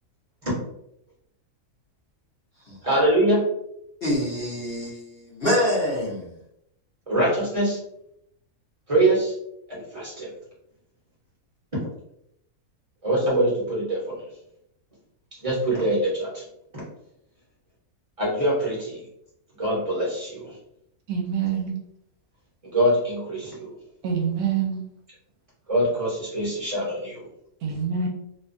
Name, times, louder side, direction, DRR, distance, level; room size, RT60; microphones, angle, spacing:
voice 1, 2.8-3.4 7.1-7.8 8.9-9.3 9.7-10.3 13.0-14.2 15.4-16.4 18.2-19.0 19.6-20.5 22.7-23.7 25.7-27.3, right 1 dB, 25° right, 0.9 m, -23 dB
voice 2, 4.0-6.3 21.4-21.5 27.7-27.8, left 1 dB, 45° left, 1.0 m, -26 dB
voice 3, 21.1-21.8 24.0-24.8 27.6-28.1, right 6 dB, 75° right, 1.1 m, -26 dB
2.8 x 2.2 x 2.5 m
omnidirectional pair, 1.6 m